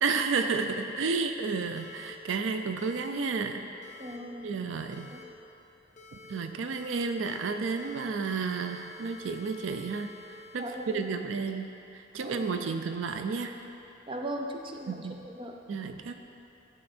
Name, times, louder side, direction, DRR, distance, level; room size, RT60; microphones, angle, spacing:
voice 1, 0.0-3.7 4.4-5.1 6.3-10.1 10.5-13.5 14.9-15.2 15.7-16.1, right 4 dB, 80° right, 7 dB, 0.4 m, -31 dB
sound 1, 1.8-2.1 2.8-3.1 3.8-4.2 4.9-5.2 6.0-6.3 6.7-7.5 7.8-11.5, left 2 dB, 40° left, 0.7 m, -50 dB
voice 2, 4.0-4.5 5.1-5.2 10.6-11.0 12.2-12.8 14.1-15.6, equal, 25° right, 2 dB, 0.5 m, -39 dB
11.0 x 4.9 x 4.3 m, 2.8 s
head